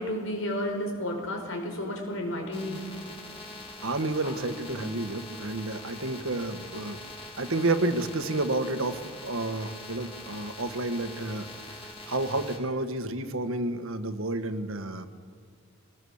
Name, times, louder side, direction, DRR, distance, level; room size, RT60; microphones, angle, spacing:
voice 1, 0.0-2.8 4.8-4.9, left 1 dB, 70° left, 3 dB, 5.0 m, -32 dB
sound 1, 2.5-12.6, left 2 dB, 25° left, 4.3 m, -43 dB
voice 2, 3.8-7.0 7.4-11.5 12.1-15.1, right 2 dB, 75° right, 9 dB, 1.5 m, -30 dB
23.5 x 19.5 x 7.2 m, 2.1 s
head